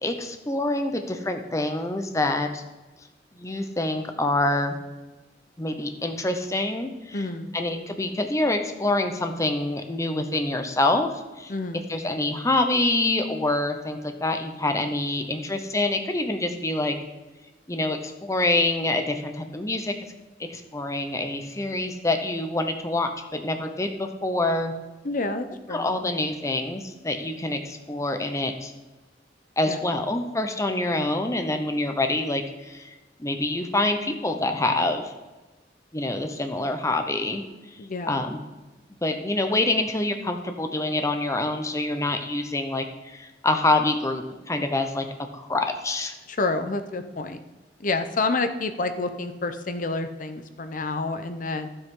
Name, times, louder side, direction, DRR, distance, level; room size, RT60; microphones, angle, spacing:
voice 1, 0.0-2.6 3.4-4.8 5.6-7.3 7.5-11.1 11.4-11.5 11.9-17.0 17.7-20.0 20.4-24.7 25.7-28.7 29.6-32.9 33.2-35.1 35.9-37.4 38.1-38.4 39.0-45.1 45.3-46.1, left 2 dB, 20° left, 6 dB, 0.8 m, -26 dB
voice 2, 7.1-7.5 11.5-11.9 25.0-25.9 29.7-29.8 37.8-38.3 46.3-47.4 47.8-51.7, left 3 dB, 50° left, 9 dB, 0.8 m, -29 dB
12.5 x 7.9 x 3.8 m, 1.2 s
head